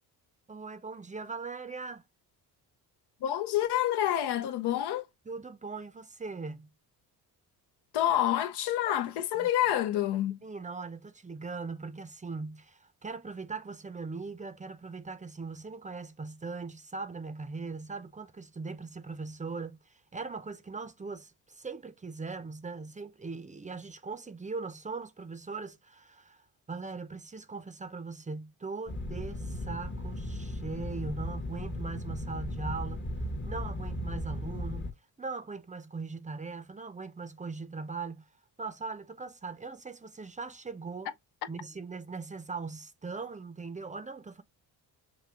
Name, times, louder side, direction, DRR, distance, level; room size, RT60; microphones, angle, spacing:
voice 1, 0.5-2.0 5.3-6.7 9.3-9.5 10.4-33.1 33.4-38.3 38.6-41.1 41.5-44.4, right 4 dB, 20° right, 0.5 m, -40 dB
voice 2, 3.2-5.1 7.9-10.4, left 12 dB, 70° left, 0.6 m, -28 dB
sound 1, 28.9-34.9, left 1 dB, 25° left, 0.8 m, -36 dB
5.9 x 2.6 x 2.5 m
supercardioid pair, 75°, 42 cm